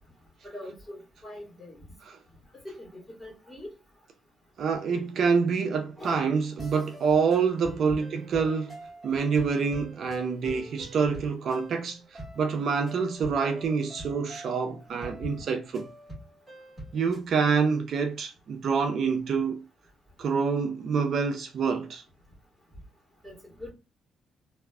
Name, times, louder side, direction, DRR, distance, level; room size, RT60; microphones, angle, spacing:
voice 1, 0.5-1.8 2.5-3.7 6.0-6.3 7.9-8.0 23.2-23.7, left 1 dB, 5° left, 1.7 m, -42 dB
voice 2, 4.6-8.8 9.0-15.9 16.9-19.6 20.2-22.0, right 5 dB, 60° right, 0.4 m, -27 dB
sound 1, 6.6-17.3, right 1 dB, 15° right, 1.7 m, -46 dB
3.2 x 2.4 x 2.3 m
cardioid pair, 90°, 0 cm